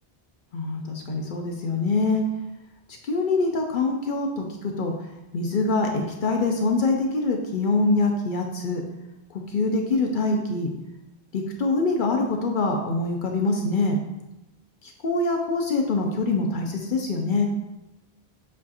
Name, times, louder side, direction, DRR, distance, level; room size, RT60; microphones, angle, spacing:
voice 1, 0.5-2.2 3.0-4.9 5.3-8.8 9.3-10.7 11.3-14.0 14.8-17.5, left 3 dB, 60° left, 2 dB, 0.6 m, -24 dB
7.3 x 2.4 x 2.8 m, 0.98 s
omnidirectional pair, 1.1 m